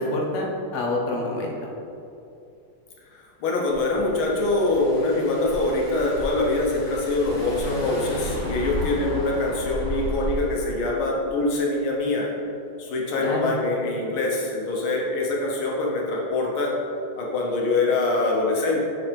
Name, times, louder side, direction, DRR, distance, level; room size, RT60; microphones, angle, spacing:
voice 1, 0.0-1.5 9.1-9.3 13.2-13.5, left 2 dB, 55° left, -1 dB, 0.8 m, -27 dB
voice 2, 3.2-12.3 12.8-16.7 17.2-18.9, left 2 dB, 90° left, -2 dB, 1.8 m, -24 dB
Car / Engine, 3.8-10.6, equal, 35° left, 1.1 m, -33 dB
7.9 x 4.1 x 3.4 m, 2.7 s
omnidirectional pair, 2.2 m